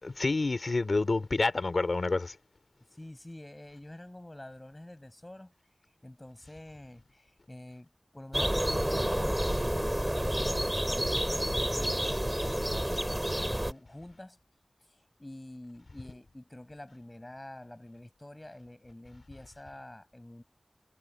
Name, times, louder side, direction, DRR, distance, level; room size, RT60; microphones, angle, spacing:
voice 1, 0.0-2.4, left 3 dB, 75° left, 3.1 m, -28 dB
voice 2, 2.9-5.5 6.0-13.0 13.6-14.4 14.9-20.4, left 1 dB, 25° left, 6.0 m, -47 dB
sound 1, 8.3-13.7, right 1 dB, 10° right, 3.2 m, -29 dB
wide cardioid pair, 65°, 0 cm